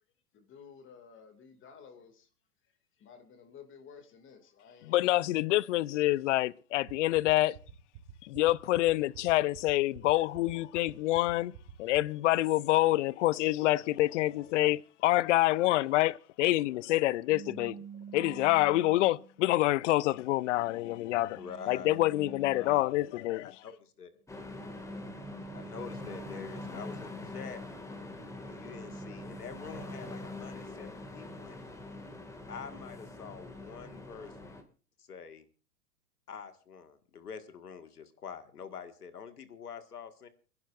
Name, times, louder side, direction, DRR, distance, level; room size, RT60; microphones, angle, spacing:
voice 1, 0.3-2.3 2.6-5.7, left 6 dB, 25° left, 2.3 m, -54 dB
voice 2, 4.9-7.6 8.2-17.8 18.1-23.5, left 17 dB, 55° left, 0.7 m, -27 dB
sound 1, 6.9-12.0, right 12 dB, 50° right, 3.3 m, -48 dB
sound 2, 17.3-19.5 20.1-23.2 24.3-27.3 27.8-30.7, right 7 dB, 30° right, 1.7 m, -50 dB
voice 3, 21.4-22.0 22.5-22.8 23.1-24.2 25.5-27.6 28.4-31.6 32.5-34.7 35.0-35.5 36.3-40.3, left 6 dB, 85° left, 1.9 m, -46 dB
sound 3, 24.3-34.6, left 2 dB, 5° left, 2.1 m, -44 dB
30.0 x 11.0 x 2.5 m
hypercardioid pair, 110°, 45 cm